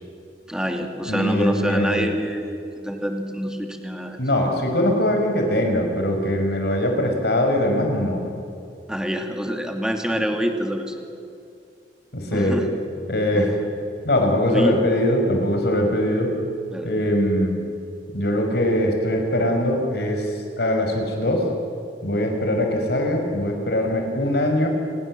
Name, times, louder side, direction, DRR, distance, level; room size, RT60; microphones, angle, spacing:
voice 1, 0.5-4.2 8.9-11.1 12.3-12.7 13.3-13.5 14.5-14.8 16.7-16.9, equal, 5° right, 4 dB, 2.4 m, -26 dB
voice 2, 1.1-2.1 4.2-8.2 12.1-12.6 13.1-13.5 14.0-16.3 16.8-17.5 18.1-21.5 22.0-24.7, left 1 dB, 65° left, 3 dB, 5.3 m, -22 dB
29.0 x 21.0 x 7.6 m, 2.5 s
head